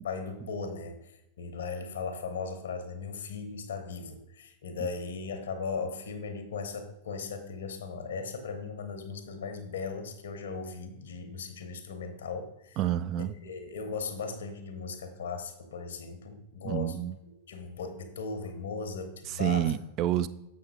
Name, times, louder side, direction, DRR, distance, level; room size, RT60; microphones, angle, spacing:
voice 1, 0.0-12.8 13.4-17.0 17.5-19.7, left 5 dB, 65° left, 8 dB, 0.9 m, -37 dB
voice 2, 12.8-13.3 16.6-17.2 19.3-20.3, right 12 dB, 40° right, 13 dB, 0.3 m, -28 dB
7.1 x 6.1 x 3.6 m, 0.87 s
figure-of-eight pair, 90°, 0 cm